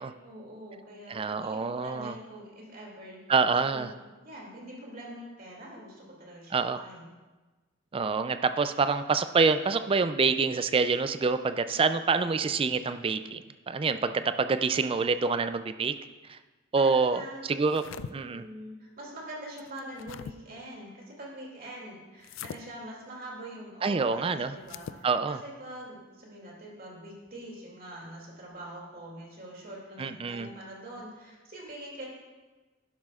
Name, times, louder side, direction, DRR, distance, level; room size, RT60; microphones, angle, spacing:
voice 1, 0.2-3.2 3.5-6.5 6.8-7.1 16.7-32.1, right 1 dB, 50° right, -2 dB, 2.5 m, -44 dB
voice 2, 1.1-2.1 3.3-3.9 6.5-6.8 7.9-15.9 16.3-16.4 16.7-17.8 18.1-18.4 23.8-24.5 25.0-25.4 30.0-30.5, right 4 dB, 30° right, 11 dB, 0.4 m, -26 dB
sound 1, 17.6-18.1 19.6-20.3 22.2-22.6 24.6-25.0, left 7 dB, 80° left, 0.3 m, -41 dB
11.5 x 11.0 x 2.4 m, 1.2 s
head